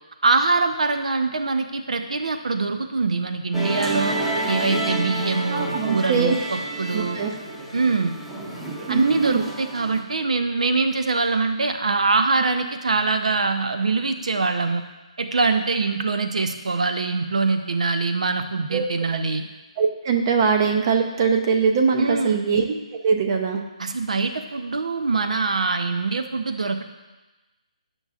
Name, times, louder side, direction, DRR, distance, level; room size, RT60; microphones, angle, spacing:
voice 1, 0.2-4.2 4.5-7.2 7.7-8.2 8.9-14.8 15.2-19.4 22.0-22.4 23.8-26.8, right 3 dB, 75° right, 7 dB, 0.6 m, -23 dB
Musical instrument, 3.5-10.0, right 2 dB, 5° right, 0.8 m, -29 dB
voice 2, 5.5-6.3 6.9-7.3 8.9-9.4 18.7-18.9 19.8-22.6 23.0-23.6, right 5 dB, 40° right, 3 dB, 0.7 m, -21 dB
8.1 x 5.4 x 2.4 m, 1.1 s
hypercardioid pair, 150°, 4 cm